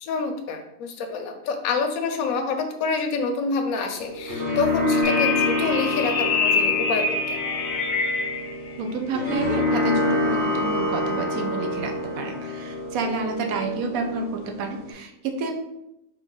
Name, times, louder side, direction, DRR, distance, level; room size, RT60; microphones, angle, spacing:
voice 1, 0.0-7.4, left 4 dB, 75° left, 5 dB, 1.1 m, -27 dB
sound 1, 4.0-14.9, left 2 dB, 40° right, 1.6 m, -27 dB
sound 2, 5.0-8.5, left 4 dB, 50° left, 0.7 m, -25 dB
voice 2, 8.8-15.6, right 3 dB, 75° right, 4 dB, 1.1 m, -29 dB
4.5 x 2.9 x 3.8 m, 0.87 s
omnidirectional pair, 1.5 m